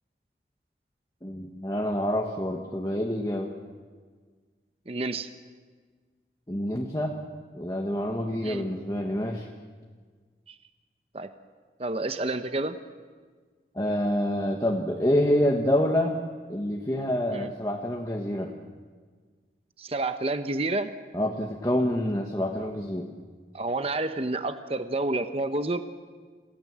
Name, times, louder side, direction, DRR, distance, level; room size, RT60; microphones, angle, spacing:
voice 1, 1.2-3.5 6.5-7.1 7.5-9.5 13.7-16.2 16.5-18.5 21.1-23.1, left 1 dB, 20° left, 0 dB, 1.3 m, -27 dB
voice 2, 4.9-5.3 8.4-8.7 10.5-10.6 11.1-11.3 11.8-12.8 17.3-17.5 19.8-20.9 23.5-25.8, right 2 dB, 35° right, 9 dB, 0.9 m, -29 dB
28.0 x 17.0 x 7.5 m, 1.5 s
head